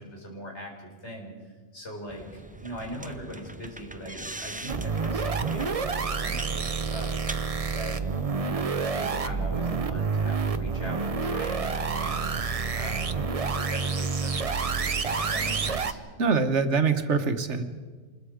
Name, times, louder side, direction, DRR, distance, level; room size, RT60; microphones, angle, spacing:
voice 1, 0.0-1.3 1.7-7.2 7.7-8.0 8.4-13.1 13.4-16.0, equal, 75° left, 0 dB, 4.8 m, -40 dB
sound 1, 2.1-8.5, right 2 dB, 10° right, 0.4 m, -42 dB
sound 2, 4.7-15.9, right 5 dB, 35° right, 0.7 m, -28 dB
voice 2, 16.2-17.6, right 5 dB, 80° right, 8 dB, 1.5 m, -24 dB
26.5 x 21.0 x 5.0 m, 1.5 s
omnidirectional pair, 1.2 m